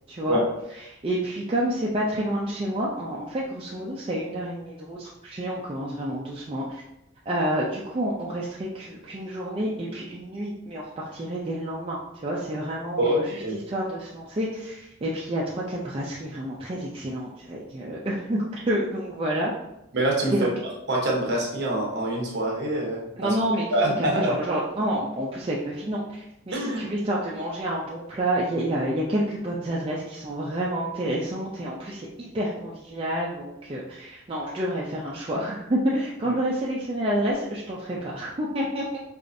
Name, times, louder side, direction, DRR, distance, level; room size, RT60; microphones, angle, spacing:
voice 1, 0.1-0.4 0.9-6.8 7.3-13.4 13.7-19.5 20.3-20.5 23.2-39.0, right 1 dB, 25° right, -4 dB, 0.4 m, -29 dB
voice 2, 13.0-13.6 19.9-20.5 20.9-23.3 23.7-24.4 26.5-26.9, right 1 dB, 55° right, -2 dB, 0.9 m, -25 dB
4.8 x 2.5 x 2.6 m, 0.87 s
head